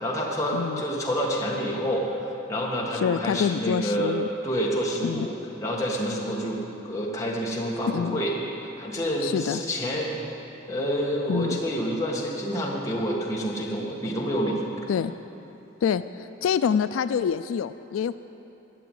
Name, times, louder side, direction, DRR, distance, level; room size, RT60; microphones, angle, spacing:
voice 1, 0.0-2.1 2.5-4.2 4.4-5.3 5.6-8.3 8.8-10.1 10.7-14.6, equal, 15° left, -3 dB, 1.6 m, -28 dB
voice 2, 2.9-4.3 5.0-5.3 7.9-8.2 9.2-9.6 11.3-11.6 14.9-15.1 15.8-18.2, left 7 dB, 90° left, 13 dB, 0.3 m, -26 dB
12.0 x 6.9 x 9.1 m, 3.0 s
head